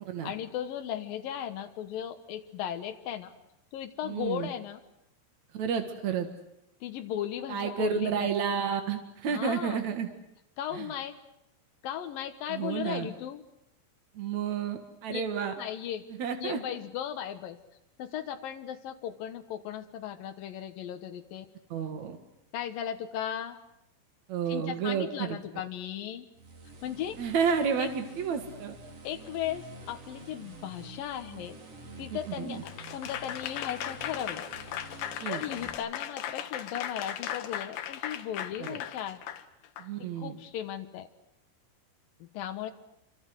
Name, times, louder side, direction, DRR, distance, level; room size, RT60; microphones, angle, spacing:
voice 1, 0.2-3.3 3.7-4.8 6.8-8.5 9.3-9.8 10.6-11.2 11.8-13.4 15.1-15.2 15.6-16.1 16.4-17.6 18.0-21.5 22.5-23.6 24.5-26.3 26.8-27.2 27.8-27.9 29.0-31.6 32.0-34.5 35.0-39.2 40.0-41.1 42.2-42.7, left 10 dB, 90° left, 7 dB, 2.0 m, -36 dB
voice 2, 4.0-4.5 5.5-6.3 7.5-10.1 10.7-10.9 12.5-13.1 14.1-15.5 16.2-16.6 21.7-22.2 24.3-25.4 27.2-28.7 32.1-32.6 35.2-35.4 38.6-38.8 39.8-40.4, right 7 dB, 60° right, 6 dB, 2.0 m, -31 dB
sound 1, 26.3-35.7, right 2 dB, 35° right, 3.9 m, -48 dB
Applause / Crowd, 32.7-39.9, left 10 dB, 65° left, 2.7 m, -37 dB
28.0 x 25.5 x 8.0 m, 0.82 s
omnidirectional pair, 6.0 m